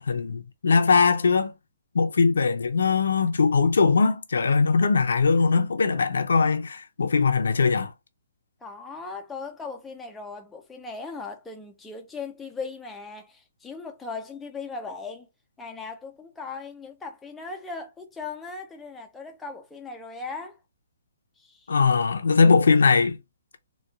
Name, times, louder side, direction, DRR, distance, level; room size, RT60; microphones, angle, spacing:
voice 1, 0.0-1.5 1.9-7.9 21.7-23.2, left 4 dB, 85° left, 0.6 m, -21 dB
voice 2, 8.6-15.3 15.6-20.6 21.4-21.7, left 4 dB, 5° left, 0.5 m, -38 dB
4.1 x 2.3 x 2.2 m
hypercardioid pair, 160°, 0 cm